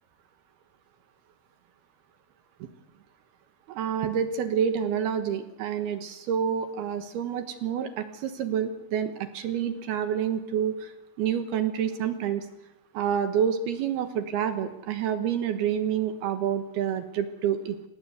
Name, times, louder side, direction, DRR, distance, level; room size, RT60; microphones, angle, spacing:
voice 1, 3.7-10.9 11.2-12.5 12.9-17.8, right 8 dB, 65° right, 9 dB, 3.0 m, -28 dB
28.0 x 18.0 x 8.2 m, 0.84 s
omnidirectional pair, 5.3 m